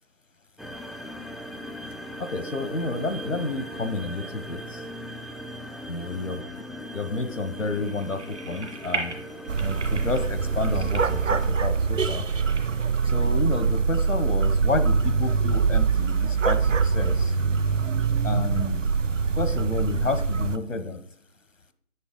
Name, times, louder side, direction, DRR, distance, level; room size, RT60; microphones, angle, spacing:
sound 1, 0.6-11.5, equal, ahead, 0.3 m, -39 dB
voice 1, 2.2-4.8 5.9-6.4 6.9-9.2 9.6-12.2 13.0-17.3 18.2-18.8 19.4-21.0, left 3 dB, 90° left, 11 dB, 1.1 m, -30 dB
sound 2, 7.6-13.1, right 4 dB, 65° right, 2.0 m, -38 dB
sound 3, 9.5-20.6, right 5 dB, 80° right, 0.7 m, -24 dB
7.1 x 6.5 x 5.3 m, 0.65 s
figure-of-eight pair, 150°, 37 cm